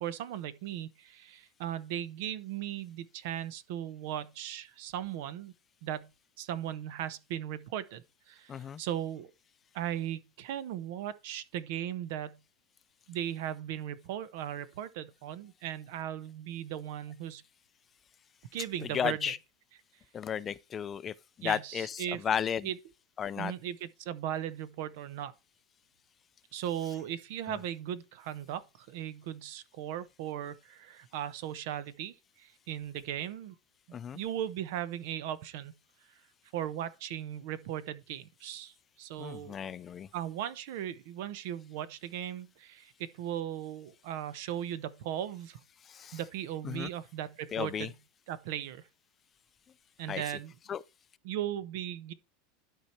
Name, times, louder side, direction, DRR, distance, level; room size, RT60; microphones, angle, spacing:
voice 1, 0.0-5.5 5.8-6.1 6.4-9.3 9.7-12.4 13.1-17.4 18.5-19.3 21.4-22.2 22.6-22.8 23.4-25.3 26.5-33.5 34.1-35.7 36.5-39.6 40.1-45.6 46.1-47.9 48.3-48.8 50.0-50.5 51.2-52.1, right 11 dB, 65° right, 0.8 m, -37 dB
voice 2, 8.5-8.8 18.8-19.4 20.1-22.7 23.2-23.5 27.5-27.6 33.9-34.2 39.2-40.1 45.9-46.2 46.6-46.9 47.5-47.9 50.1-50.2 50.7-50.8, left 8 dB, 25° left, 0.4 m, -34 dB
11.5 x 4.6 x 4.4 m
supercardioid pair, 150°, 0 cm